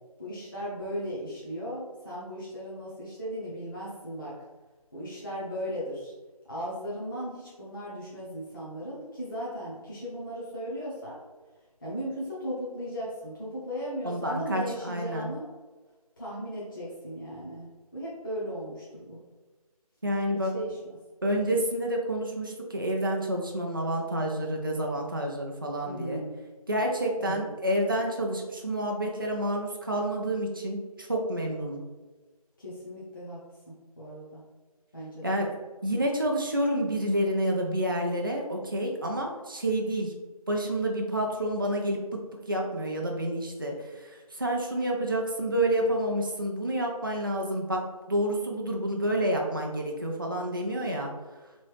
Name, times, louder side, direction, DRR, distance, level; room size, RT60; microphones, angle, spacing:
voice 1, 0.2-4.4 4.9-6.1 6.5-11.2 11.8-15.5 16.2-19.2 20.3-20.8 25.8-26.3 27.2-27.5 32.6-33.4 33.7-34.4 34.9-35.2, equal, 35° left, -8 dB, 0.7 m, -37 dB
voice 2, 14.0-15.3 20.0-20.5 21.2-26.2 26.7-31.8 35.2-35.5 35.8-40.1 40.5-51.1, right 1 dB, 35° right, 0 dB, 0.4 m, -29 dB
3.0 x 2.6 x 3.2 m, 1.3 s
figure-of-eight pair, 165°, 19 cm